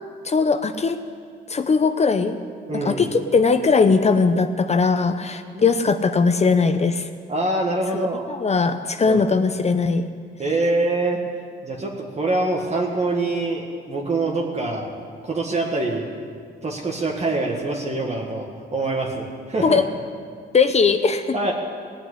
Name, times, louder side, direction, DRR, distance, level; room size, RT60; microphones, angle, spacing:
voice 1, 0.2-1.0 1.5-2.4 2.8-7.1 7.9-10.1 19.6-19.8 20.5-21.4, left 4 dB, 35° left, 9 dB, 0.8 m, -19 dB
voice 2, 2.7-3.1 5.5-5.7 7.3-8.3 9.1-9.2 10.4-11.2 11.6-16.1 16.6-19.8 21.3-21.5, right 2 dB, 35° right, -1 dB, 1.8 m, -25 dB
17.5 x 7.1 x 9.8 m, 2.1 s
cardioid pair, 90°, 20 cm